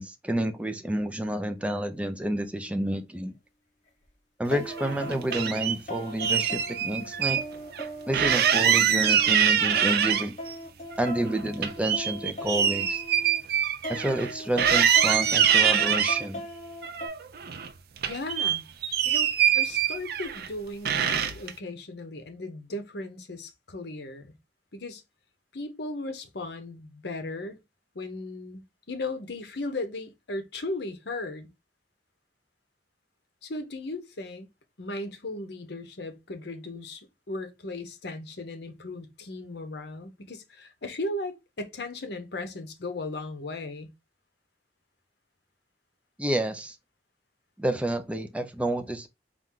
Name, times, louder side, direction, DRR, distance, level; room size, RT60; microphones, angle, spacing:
voice 1, 0.0-3.3 4.4-7.4 8.1-10.3 11.0-13.0 13.9-16.4 46.2-46.8 47.6-49.1, right 1 dB, 5° right, 0.5 m, -29 dB
sound 1, 2.4-2.5 4.5-13.4 13.8-17.1, equal, 40° left, 1.2 m, -39 dB
sound 2, 4.7-5.8 6.2-7.4 7.7-7.8 8.1-10.5 10.9-14.3 14.6-16.2 16.8-17.7 18.0-20.5 20.9-21.5, right 8 dB, 55° right, 0.5 m, -24 dB
voice 2, 18.1-18.7 19.0-24.4 24.7-25.0 25.5-27.6 27.9-31.5 33.4-34.5 34.8-43.9, left 2 dB, 65° left, 0.8 m, -36 dB
4.3 x 2.5 x 3.6 m
head